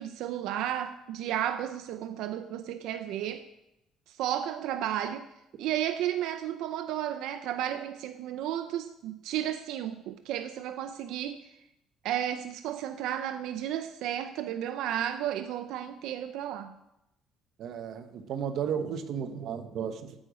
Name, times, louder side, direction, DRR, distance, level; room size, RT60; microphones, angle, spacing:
voice 1, 0.0-3.4 4.1-5.3 5.6-11.5 12.0-16.7, right 11 dB, 80° right, 9 dB, 0.6 m, -33 dB
voice 2, 17.6-20.1, right 7 dB, 50° right, 9 dB, 1.0 m, -34 dB
13.0 x 8.9 x 5.1 m, 0.88 s
cardioid pair, 170°, 0 cm